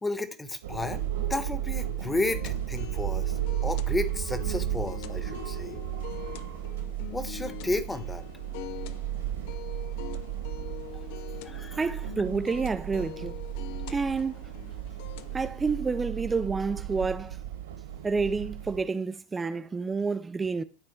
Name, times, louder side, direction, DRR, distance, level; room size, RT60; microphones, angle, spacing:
voice 1, 0.0-5.8 7.1-8.2 11.4-11.8, left 2 dB, 10° left, 1.2 m, -32 dB
sound 1, 0.6-18.8, right 12 dB, 70° right, 1.7 m, -34 dB
sound 2, 2.1-15.5, left 15 dB, 55° left, 0.5 m, -44 dB
voice 2, 11.8-13.4 13.9-14.5 15.3-17.4 18.0-20.6, right 4 dB, 15° right, 0.5 m, -29 dB
12.0 x 4.4 x 4.8 m
figure-of-eight pair, 80°, 0 cm